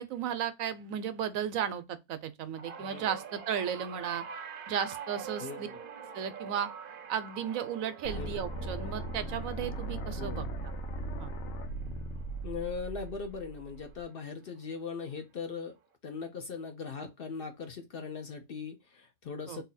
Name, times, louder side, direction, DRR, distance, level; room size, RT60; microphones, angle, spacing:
voice 1, 0.0-4.2 4.7-5.7 6.1-6.7 7.1-10.4 11.2-11.3 19.5-19.6, right 8 dB, 85° right, 1.0 m, -34 dB
sound 1, 2.6-13.0 13.4-13.8 14.9-15.0, right 6 dB, 55° right, 0.6 m, -46 dB
voice 2, 5.4-5.8 8.2-8.3 10.2-10.5 12.4-15.8 16.0-19.6, left 5 dB, 55° left, 0.7 m, -40 dB
sound 2, 8.0-14.0, right 2 dB, 75° left, 1.1 m, -38 dB
2.8 x 2.6 x 3.9 m
omnidirectional pair, 1.4 m